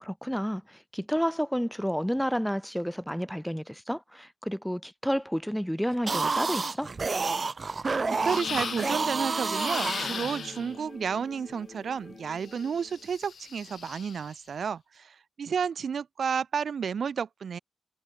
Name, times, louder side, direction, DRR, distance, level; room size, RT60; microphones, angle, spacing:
voice 1, 0.0-6.9, equal, ahead, 0.4 m, -30 dB
sound 1, 5.9-10.7, right 4 dB, 45° right, 0.8 m, -30 dB
voice 2, 7.6-17.6, right 6 dB, 90° right, 0.5 m, -32 dB
sound 2, 8.0-13.1, left 4 dB, 45° left, 6.0 m, -44 dB
sound 3, 8.2-9.1 9.5-10.7 12.4-14.3, left 6 dB, 90° left, 1.8 m, -38 dB
wide cardioid pair, 100°, 0 cm